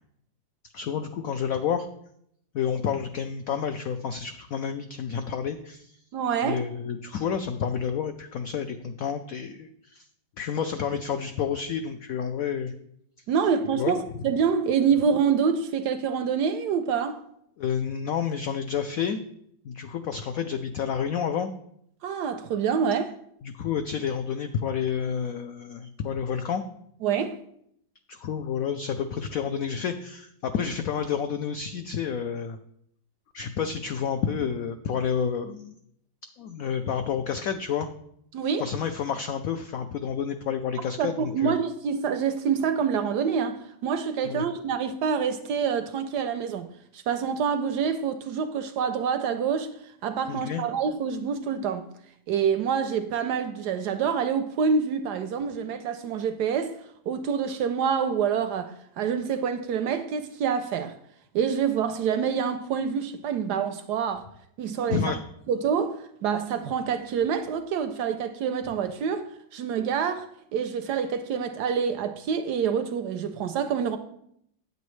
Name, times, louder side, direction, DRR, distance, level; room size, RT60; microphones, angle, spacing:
voice 1, 0.7-1.9 2.5-6.0 6.4-10.0 10.4-12.7 13.7-14.0 17.6-19.2 19.6-21.5 23.4-26.6 28.1-32.6 33.3-35.8 36.4-37.9 38.6-41.6 44.2-44.4 50.3-50.6 64.9-65.2, left 7 dB, 85° left, 0.7 m, -29 dB
voice 2, 6.1-6.6 13.3-17.2 22.0-23.1 27.0-27.4 38.3-38.7 41.0-46.7 46.9-49.7 50.0-51.9 52.3-56.8 57.1-61.0 61.3-64.2 64.6-65.2 65.5-74.0, right 7 dB, 75° right, 1.0 m, -26 dB
9.2 x 8.0 x 3.1 m
omnidirectional pair, 2.1 m